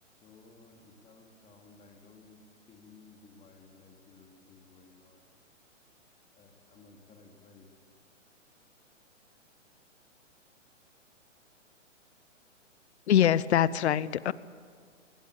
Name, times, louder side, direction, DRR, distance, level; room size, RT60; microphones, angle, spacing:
voice 1, 0.2-5.3 6.3-7.7, left 4 dB, 15° left, 2 dB, 2.9 m, -57 dB
voice 2, 13.1-14.3, left 10 dB, 60° left, 19 dB, 0.9 m, -24 dB
21.5 x 19.5 x 8.9 m, 2.1 s
hypercardioid pair, 135°, 38 cm